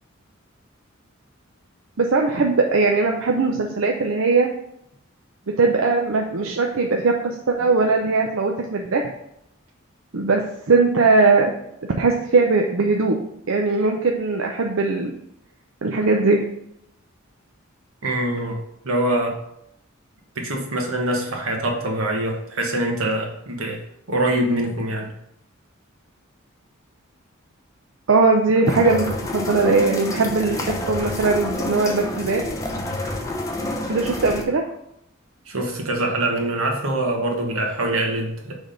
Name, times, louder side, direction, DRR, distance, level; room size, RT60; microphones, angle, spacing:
voice 1, 2.0-4.5 5.6-9.1 10.1-11.5 12.0-13.2 13.5-15.1 15.8-16.4 28.1-30.6 30.9-32.4 33.9-34.7, right 3 dB, 70° right, 2 dB, 0.6 m, -20 dB
voice 2, 18.0-19.4 20.3-23.8 24.1-25.1 35.5-38.6, right 1 dB, 90° right, 1 dB, 1.4 m, -24 dB
sound 1, 28.7-34.4, left 1 dB, 15° left, 0.8 m, -28 dB
6.2 x 3.5 x 5.2 m, 0.78 s
head